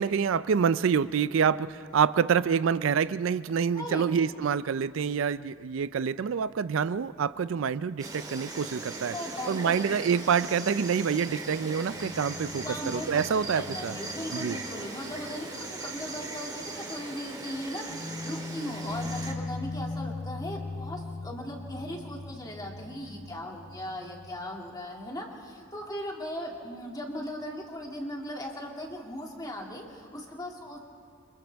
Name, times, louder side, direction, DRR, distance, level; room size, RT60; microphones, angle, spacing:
voice 1, 0.0-9.1 9.5-13.9 14.3-14.6, right 6 dB, 75° right, 16 dB, 0.4 m, -27 dB
voice 2, 3.7-4.0 9.1-9.8 12.6-30.8, left 1 dB, 20° left, 0 dB, 2.4 m, -38 dB
Insect, 8.0-19.3, right 2 dB, 20° right, 2.0 m, -39 dB
sound 1, 10.9-16.3 16.6-16.7 17.9-24.4, left 3 dB, 40° left, 3.4 m, -40 dB
29.0 x 26.0 x 3.5 m, 2.4 s
head